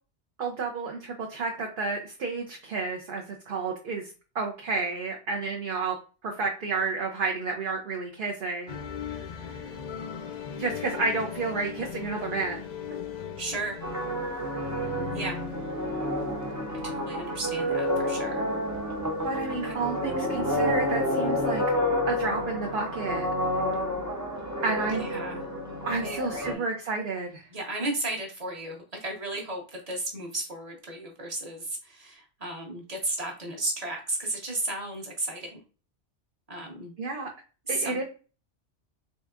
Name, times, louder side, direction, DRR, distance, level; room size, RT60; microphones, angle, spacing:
voice 1, 0.4-4.1 4.3-6.0 6.2-8.8 9.1-9.2 10.6-12.6 19.2-21.6 22.1-23.3 24.6-25.0 25.9-27.5 37.0-37.3 37.7-38.0, right 3 dB, 55° right, 1 dB, 0.8 m, -31 dB
sound 1, 8.7-21.8, left 7 dB, 50° left, 0.6 m, -40 dB
voice 2, 13.4-13.8 15.1-15.4 16.8-18.5 19.6-19.8 24.9-25.4 25.9-26.6 27.5-35.6 36.5-36.9 37.6-38.0, right 2 dB, 35° right, 1 dB, 1.2 m, -34 dB
sound 2, 13.8-26.5, equal, 20° right, 0.6 m, -29 dB
4.1 x 3.4 x 2.4 m, 0.35 s
omnidirectional pair, 1.2 m